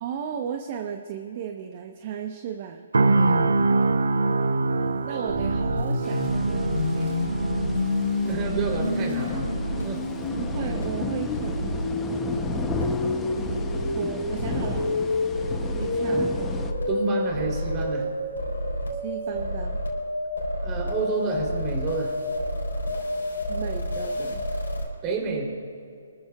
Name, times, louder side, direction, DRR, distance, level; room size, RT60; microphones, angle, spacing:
voice 1, 0.0-2.8 5.0-7.2 10.4-12.0 13.3-14.9 15.8-16.3 19.0-19.8 23.5-24.4, right 8 dB, 40° right, 5 dB, 0.8 m, -35 dB
sound 1, 2.9-16.9 17.3-17.5, right 3 dB, 80° right, 0.7 m, -28 dB
voice 2, 3.1-3.5 7.9-10.1 16.1-16.2 16.9-18.1 20.6-22.1 25.0-25.4, right 4 dB, 25° right, 0 dB, 3.2 m, -30 dB
sound 2, 5.3-24.8, left 1 dB, 85° left, 4.0 m, -29 dB
sound 3, 6.0-16.7, left 5 dB, 10° left, 0.7 m, -35 dB
24.5 x 14.0 x 2.4 m, 2.5 s
hypercardioid pair, 140°, 0 cm